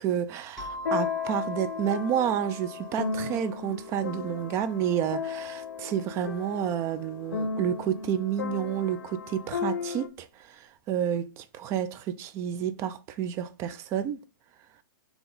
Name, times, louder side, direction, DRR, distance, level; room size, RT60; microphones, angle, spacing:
voice 1, 0.0-14.2, right 9 dB, 25° right, 0.4 m, -30 dB
sound 1, 0.6-10.1, left 6 dB, 75° left, 0.6 m, -35 dB
sound 2, 0.6-5.0, right 1 dB, 5° left, 1.7 m, -44 dB
3.7 x 2.9 x 3.9 m
hypercardioid pair, 130°, 11 cm